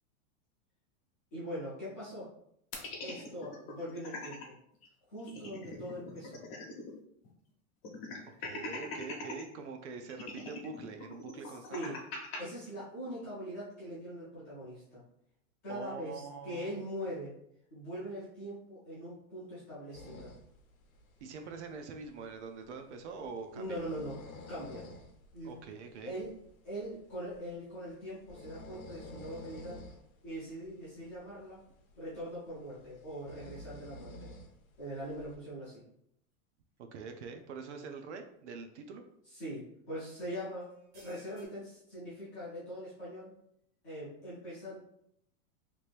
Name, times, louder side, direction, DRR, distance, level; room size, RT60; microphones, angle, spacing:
voice 1, 1.3-2.3 3.0-4.5 5.1-6.4 11.4-12.0 12.4-15.0 15.6-17.3 17.7-20.3 23.5-24.2 24.5-24.8 25.3-25.5 26.0-26.3 26.6-29.9 30.2-31.6 31.9-34.3 34.8-35.8 39.3-43.3 43.8-44.8, equal, 15° left, -10 dB, 0.4 m, -42 dB
sound 1, 2.7-4.5 4.8-4.9 5.2-7.0 7.2-7.3 7.8-9.4 10.1-12.4, left 2 dB, 45° left, 0.8 m, -42 dB
voice 2, 8.3-12.0 15.7-16.8 21.2-23.8 25.4-26.1 36.8-39.0, right 5 dB, 60° right, 6 dB, 0.5 m, -44 dB
sound 2, 19.9-35.4, left 2 dB, 90° left, 0.8 m, -52 dB
sound 3, 36.8-36.9 37.4-37.5 39.4-39.6 40.6-41.5, right 1 dB, 25° right, 0.6 m, -60 dB
3.0 x 2.5 x 3.2 m, 0.73 s
supercardioid pair, 180°, 41 cm